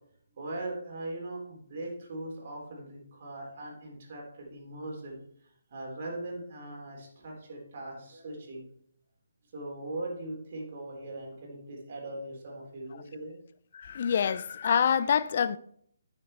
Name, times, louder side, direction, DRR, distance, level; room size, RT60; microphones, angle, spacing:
voice 1, 0.3-8.6 9.5-13.3, right 2 dB, 45° right, 3.4 m, -40 dB
voice 2, 13.7-15.6, left 7 dB, 50° left, 0.5 m, -26 dB
10.0 x 6.6 x 4.3 m
figure-of-eight pair, 150°, 0 cm